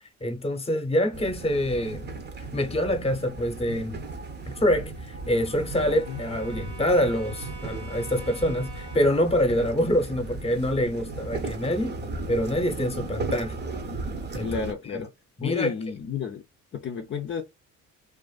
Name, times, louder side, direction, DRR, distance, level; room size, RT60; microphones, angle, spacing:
voice 1, 0.2-2.1 2.5-4.0 4.6-12.0 12.3-13.6 14.3-14.6 14.9-15.0 15.4-15.7, equal, 20° left, 0.9 m, -25 dB
sound 1, 1.1-14.7, right 3 dB, 35° right, 0.7 m, -36 dB
Brass instrument, 3.8-9.3, right 2 dB, 80° right, 1.2 m, -47 dB
voice 2, 14.4-15.1 15.4-16.4 16.7-17.4, left 6 dB, 40° left, 0.5 m, -31 dB
2.5 x 2.5 x 2.3 m
cardioid pair, 90°, 30 cm